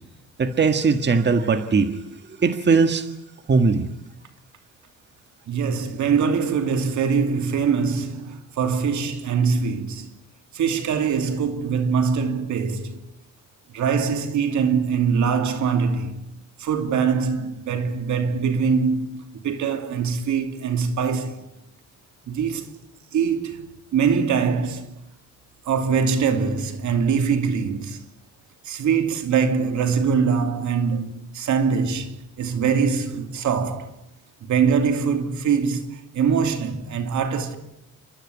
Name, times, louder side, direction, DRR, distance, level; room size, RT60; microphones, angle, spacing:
voice 1, 0.4-3.1 3.5-3.9, right 4 dB, 35° right, 1.7 m, -20 dB
voice 2, 5.5-10.1 10.5-13.0 13.7-16.2 16.6-21.4 22.3-22.7 23.1-23.6 23.9-24.9 25.7-28.0 28.6-33.9 34.4-37.6, right 6 dB, 70° right, 2.8 m, -23 dB
29.0 x 13.0 x 9.8 m
cardioid pair, 90°, 30 cm